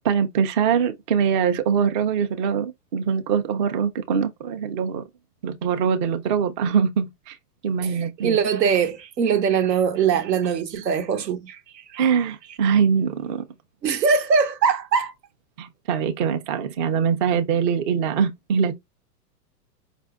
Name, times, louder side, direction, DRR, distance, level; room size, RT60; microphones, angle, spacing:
voice 1, 0.0-5.0 5.4-7.4 7.6-8.4 12.0-13.4 15.6-18.7, right 7 dB, 35° right, 0.4 m, -23 dB
voice 2, 7.8-12.0 13.8-15.1, right 6 dB, 85° right, 0.9 m, -22 dB
5.0 x 2.5 x 2.3 m
hypercardioid pair, 120°, 48 cm